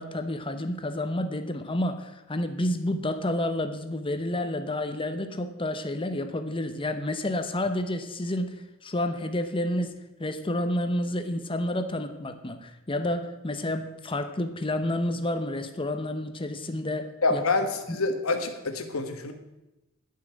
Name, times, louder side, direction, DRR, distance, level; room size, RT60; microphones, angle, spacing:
voice 1, 0.0-8.5 8.8-9.9 10.2-17.4 17.9-18.0, left 1 dB, 25° left, 8 dB, 0.9 m, -30 dB
voice 2, 17.2-19.3, left 3 dB, 80° left, 7 dB, 1.4 m, -27 dB
11.0 x 5.7 x 8.8 m, 0.98 s
head